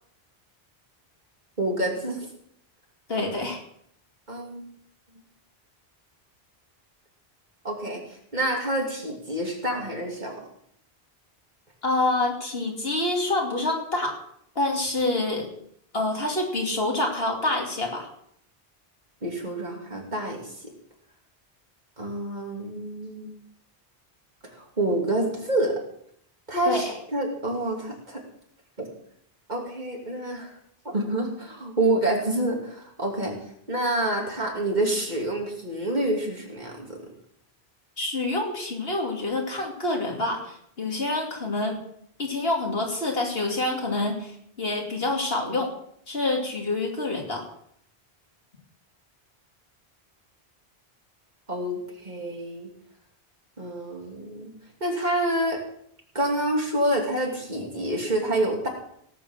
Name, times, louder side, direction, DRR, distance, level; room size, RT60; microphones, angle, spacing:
voice 1, 1.6-2.3 3.2-3.3 4.3-4.7 7.6-10.4 19.2-20.7 22.0-23.4 24.4-25.8 26.5-28.2 28.8-28.9 29.5-30.5 30.8-33.3 33.7-37.0 51.5-52.7 53.6-54.5 54.8-55.6 56.1-58.7, right 1 dB, 45° right, 0 dB, 3.1 m, -27 dB
voice 2, 3.1-3.6 11.8-14.2 14.5-15.5 15.9-18.1 26.7-26.9 38.0-41.8 42.2-45.7 46.1-47.5, left 2 dB, 70° left, 1 dB, 3.0 m, -27 dB
17.5 x 7.3 x 7.5 m, 0.70 s
omnidirectional pair, 1.1 m